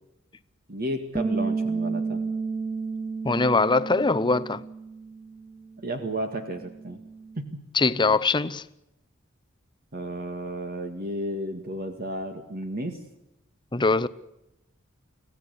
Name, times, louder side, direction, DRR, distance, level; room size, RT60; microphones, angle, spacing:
voice 1, 0.7-2.2 5.8-7.0 7.4-7.6 9.9-13.0, right 1 dB, 45° right, 2.0 m, -32 dB
Bass guitar, 1.1-7.4, right 4 dB, 5° right, 0.9 m, -32 dB
voice 2, 3.2-4.6 7.7-8.7 13.7-14.1, left 3 dB, 25° left, 0.8 m, -22 dB
25.5 x 16.5 x 8.3 m
head